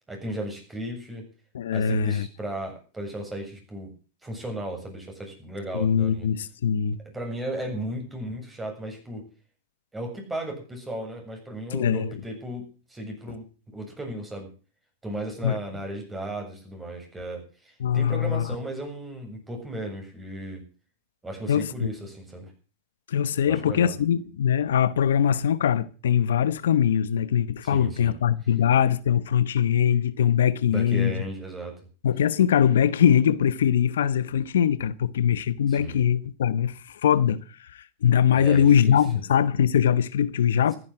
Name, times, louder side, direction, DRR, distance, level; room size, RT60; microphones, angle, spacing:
voice 1, 0.1-1.2 1.7-3.9 4.2-6.3 7.1-9.2 9.9-14.5 15.0-20.6 21.2-22.5 23.4-23.9 27.6-28.1 30.7-31.7 35.7-36.0 38.3-39.0, right 1 dB, 10° right, 7.7 m, -35 dB
voice 2, 1.5-2.3 5.7-7.0 11.7-12.2 15.4-15.6 17.8-18.5 21.5-21.9 23.1-31.2 32.0-40.7, left 8 dB, 90° left, 1.0 m, -22 dB
14.5 x 10.5 x 7.7 m
supercardioid pair, 130°, 0 cm